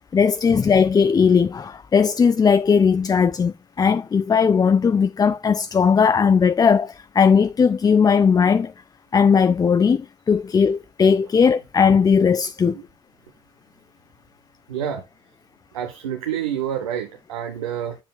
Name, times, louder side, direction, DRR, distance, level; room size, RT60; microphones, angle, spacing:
voice 1, 0.1-8.7 9.1-12.8, left 6 dB, 20° left, 0.3 m, -18 dB
voice 2, 14.7-15.0 15.7-18.0, right 9 dB, 90° right, 0.6 m, -28 dB
7.4 x 6.9 x 2.2 m
hypercardioid pair, 50°, 18 cm